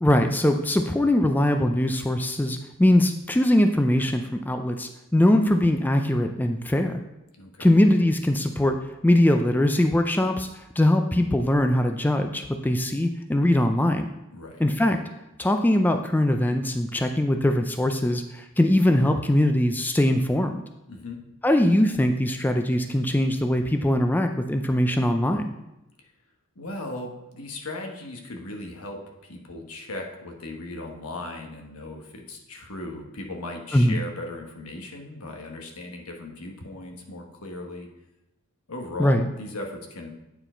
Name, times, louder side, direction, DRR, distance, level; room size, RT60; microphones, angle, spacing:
voice 1, 0.0-6.9 7.6-8.8 9.0-10.5 10.8-14.1 14.6-15.0 15.4-20.6 21.4-25.5 33.7-34.0 39.0-39.3, left 1 dB, 10° left, 6 dB, 0.3 m, -21 dB
voice 2, 14.3-14.6 20.9-21.2 26.6-37.9 38.7-40.1, left 2 dB, 85° left, 2 dB, 1.2 m, -37 dB
8.7 x 4.6 x 4.4 m, 0.93 s
head